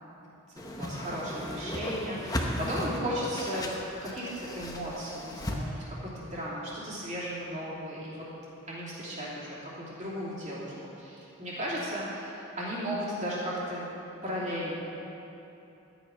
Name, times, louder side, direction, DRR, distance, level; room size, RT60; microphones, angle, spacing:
voice 1, 0.5-3.7 4.0-8.2 8.7-13.9 14.2-14.8, equal, 35° right, -7 dB, 3.0 m, -35 dB
Whoosh swoosh swish, 0.6-5.6, left 1 dB, 15° left, 0.9 m, -35 dB
12.0 x 9.3 x 5.4 m, 3.0 s
head